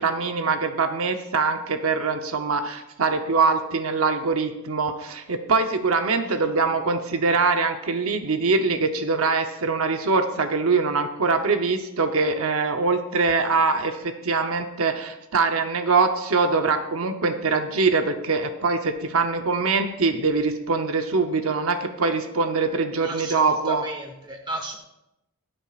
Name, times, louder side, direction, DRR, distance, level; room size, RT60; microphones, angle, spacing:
voice 1, 0.0-23.8, right 4 dB, 70° right, 6 dB, 0.8 m, -23 dB
voice 2, 23.0-24.8, right 1 dB, 20° right, 3 dB, 1.4 m, -34 dB
24.0 x 8.9 x 2.5 m, 0.90 s
head